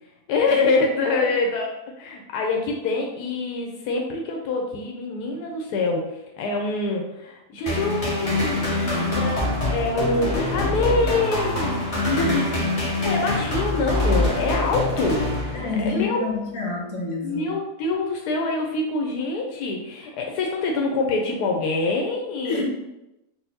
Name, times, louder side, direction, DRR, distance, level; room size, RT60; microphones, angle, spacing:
voice 1, 0.3-8.6 8.9-9.5 9.7-12.4 13.0-16.2 17.2-22.6, left 3 dB, 90° left, 1 dB, 1.1 m, -25 dB
sound 1, 7.7-16.0, left 2 dB, 40° left, 0.5 m, -25 dB
voice 2, 8.7-9.1 11.9-12.4 15.5-17.5 22.4-22.6, left 3 dB, 60° left, -3 dB, 1.4 m, -29 dB
4.1 x 2.0 x 4.0 m, 0.93 s
omnidirectional pair, 1.7 m